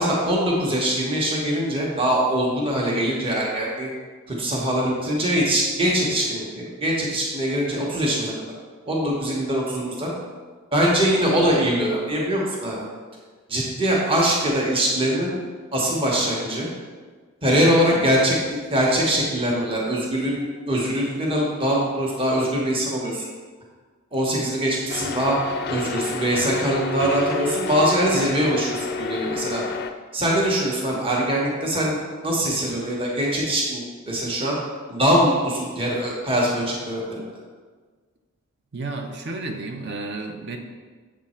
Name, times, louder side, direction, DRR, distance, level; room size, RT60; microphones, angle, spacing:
voice 1, 0.0-3.9 4.3-8.3 8.9-10.1 10.7-12.9 13.5-15.4 15.7-16.7 17.4-23.2 24.1-25.4 25.7-29.6 30.1-34.6 34.9-37.2, equal, 25° right, -4 dB, 1.0 m, -22 dB
sound 1, 24.9-29.9, left 4 dB, 50° left, 0.4 m, -30 dB
voice 2, 38.7-40.6, right 3 dB, 55° right, 4 dB, 0.7 m, -32 dB
7.3 x 3.7 x 4.3 m, 1.4 s
head